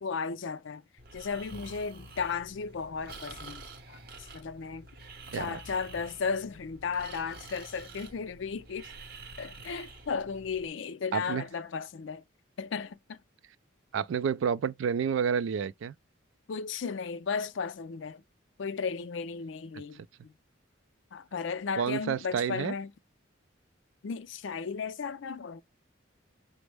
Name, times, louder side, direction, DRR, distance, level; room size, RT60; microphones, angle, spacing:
voice 1, 0.0-0.8 1.1-3.6 3.9-4.9 5.3-8.9 9.4-12.2 12.6-13.2 16.5-18.2 18.6-20.3 21.1-22.9 24.0-25.6, left 5 dB, 65° left, 0.4 m, -35 dB
Breathing, 1.0-10.7, right 3 dB, 50° right, 0.7 m, -48 dB
voice 2, 11.1-11.4 13.9-15.9 21.8-22.7, right 7 dB, 70° right, 0.3 m, -29 dB
6.0 x 2.0 x 3.2 m
head